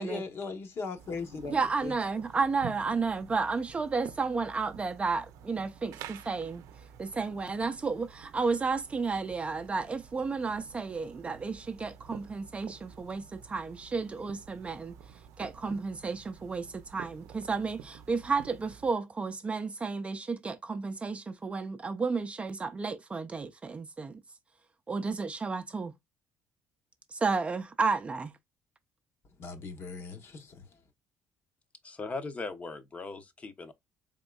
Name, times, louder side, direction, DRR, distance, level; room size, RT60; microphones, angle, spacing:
voice 1, 0.0-1.9 29.4-30.6, left 4 dB, 50° left, 1.0 m, -38 dB
sound 1, 1.0-18.9, right 9 dB, 90° right, 0.5 m, -50 dB
voice 2, 1.5-6.6 7.0-15.0 15.4-24.2 24.9-25.9 27.1-28.3, right 4 dB, 20° right, 0.5 m, -32 dB
voice 3, 31.8-33.7, left 3 dB, 25° left, 0.7 m, -39 dB
4.2 x 3.6 x 2.2 m
cardioid pair, 135°, 6 cm